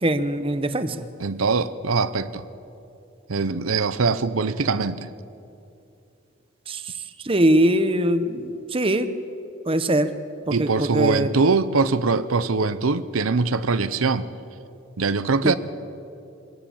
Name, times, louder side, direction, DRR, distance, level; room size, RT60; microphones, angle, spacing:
voice 1, 0.0-1.0 6.7-6.9 7.2-9.1 9.7-10.1 10.5-11.3 15.4-15.5, right 1 dB, 25° right, 0.9 m, -22 dB
voice 2, 1.2-2.4 3.3-5.1 10.5-14.3 15.0-15.5, right 4 dB, 90° right, 0.8 m, -22 dB
24.0 x 17.5 x 7.2 m
head